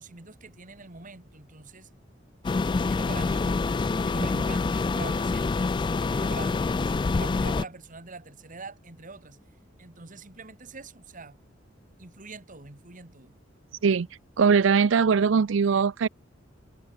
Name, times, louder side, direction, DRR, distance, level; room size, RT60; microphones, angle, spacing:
voice 1, 0.0-1.9 2.8-9.4 9.8-11.4 12.0-13.3, right 3 dB, 45° right, 2.3 m, -44 dB
sound 1, 2.4-7.6, left 3 dB, 25° left, 0.3 m, -26 dB
voice 2, 14.4-16.1, right 5 dB, 75° right, 0.5 m, -21 dB
head